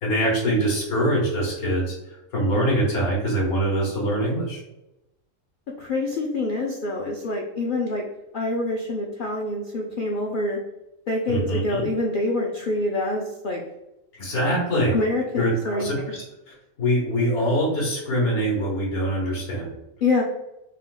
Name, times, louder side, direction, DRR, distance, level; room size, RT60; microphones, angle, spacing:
voice 1, 0.0-1.9 2.3-4.6 11.3-11.8 14.2-15.0 15.4-19.7, right 1 dB, 90° left, -5 dB, 1.7 m, -24 dB
voice 2, 5.8-8.0 8.3-10.6 11.1-13.6 14.9-16.1 20.0-20.2, left 2 dB, 70° left, -2 dB, 0.4 m, -26 dB
3.6 x 2.6 x 3.7 m, 0.91 s
omnidirectional pair, 1.5 m